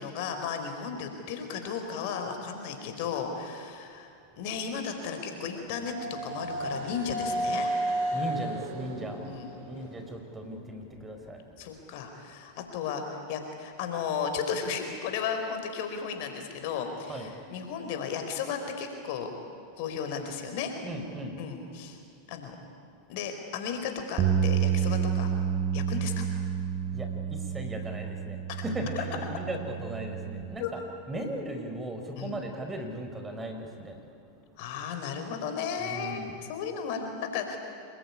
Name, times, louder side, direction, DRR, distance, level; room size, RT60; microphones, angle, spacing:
voice 1, 0.0-4.1 4.4-5.9 6.2-7.7 9.2-9.6 11.6-19.3 19.8-20.7 21.4-22.0 22.3-22.6 23.1-25.3 25.7-26.3 29.0-29.1 30.6-30.7 32.1-32.4 34.6-37.6, left 6 dB, 60° left, 5 dB, 4.8 m, -34 dB
sound 1, 4.9-10.8, right 1 dB, 60° right, 5.2 m, -34 dB
voice 2, 8.1-9.2 9.7-11.6 17.1-17.3 20.8-21.4 26.9-30.8 31.1-34.1 35.8-36.4, right 1 dB, 15° right, 5 dB, 4.6 m, -37 dB
sound 2, 24.2-30.4, right 8 dB, 40° right, 5.3 m, -29 dB
27.5 x 21.5 x 9.9 m, 2.5 s
hypercardioid pair, 100°, 0 cm